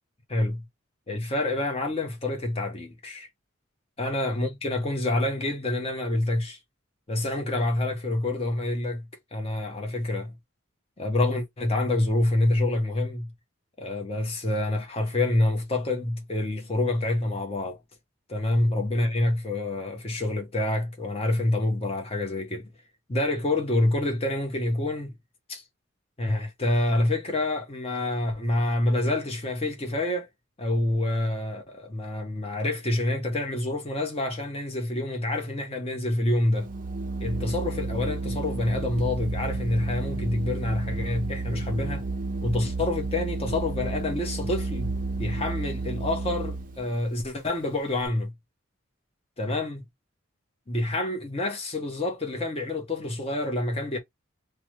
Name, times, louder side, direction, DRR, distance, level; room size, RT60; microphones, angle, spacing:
voice 1, 0.3-0.7 1.1-3.3 4.0-6.6 7.1-10.4 11.0-13.3 13.8-17.8 18.3-22.7 23.1-25.2 25.5-25.6 26.2-30.3 30.6-36.7 37.2-42.1 42.4-44.9 45.2-48.3 49.4-49.8 50.7-54.0, left 1 dB, 30° left, 0.8 m, -27 dB
Organ, 36.6-46.9, right 2 dB, 40° right, 0.5 m, -31 dB
3.2 x 2.1 x 3.0 m
head